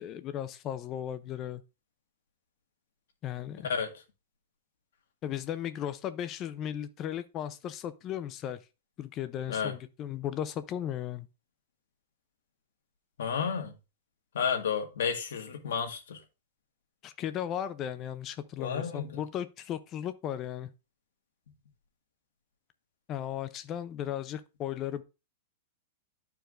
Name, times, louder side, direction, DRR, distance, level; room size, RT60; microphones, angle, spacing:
voice 1, 0.0-1.6 3.2-3.7 5.2-8.6 9.0-11.3 17.0-20.7 23.1-25.0, left 10 dB, 20° left, 0.4 m, -36 dB
voice 2, 13.2-13.7 14.3-16.2 18.6-19.2, left 6 dB, 85° left, 1.6 m, -31 dB
11.0 x 4.6 x 2.5 m
supercardioid pair, 170°, 0 cm